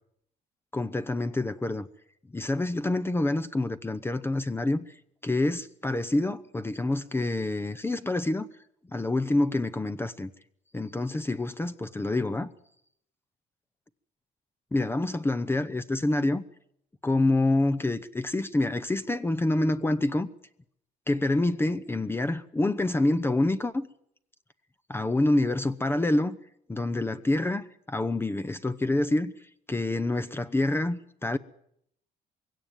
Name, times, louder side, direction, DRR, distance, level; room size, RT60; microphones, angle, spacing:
voice 1, 0.7-1.9 2.3-4.9 5.2-8.5 8.9-10.3 10.7-12.5 14.7-16.4 17.0-20.3 21.1-23.9 24.9-26.4 26.7-31.4, left 2 dB, 15° left, 0.8 m, -27 dB
22.0 x 17.0 x 9.0 m
cardioid pair, 110°, 17 cm